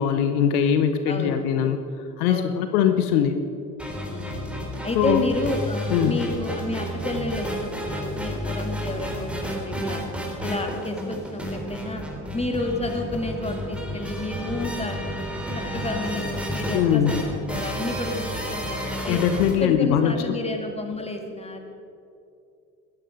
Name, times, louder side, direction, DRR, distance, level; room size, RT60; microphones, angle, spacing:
voice 1, 0.0-1.8 2.2-3.4 4.9-5.2 5.9-6.2 16.7-17.2 19.1-20.4, left 8 dB, 75° left, 8 dB, 1.0 m, -21 dB
voice 2, 1.1-1.4 2.3-2.8 4.1-4.4 4.8-10.0 10.4-12.0 12.3-15.2 15.5-17.2 17.5-19.2 19.6-21.7, left 2 dB, 15° left, 4 dB, 2.5 m, -30 dB
sound 1, 3.8-19.5, equal, 5° right, 3.7 m, -31 dB
16.5 x 12.5 x 5.3 m, 2.6 s
hypercardioid pair, 60°, 45 cm